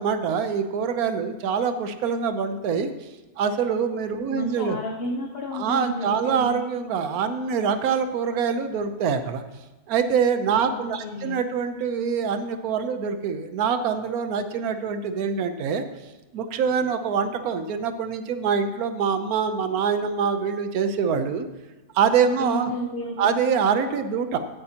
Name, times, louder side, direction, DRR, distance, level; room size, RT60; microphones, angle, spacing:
voice 1, 0.0-2.9 3.4-4.8 5.5-9.4 9.9-15.8 16.3-21.5 21.9-22.7 23.2-24.4, right 6 dB, 85° right, 9 dB, 1.2 m, -24 dB
voice 2, 4.3-6.6 10.7-11.4 22.4-23.4, equal, 50° left, 2 dB, 0.9 m, -31 dB
17.0 x 8.7 x 2.9 m, 1.1 s
omnidirectional pair, 1.5 m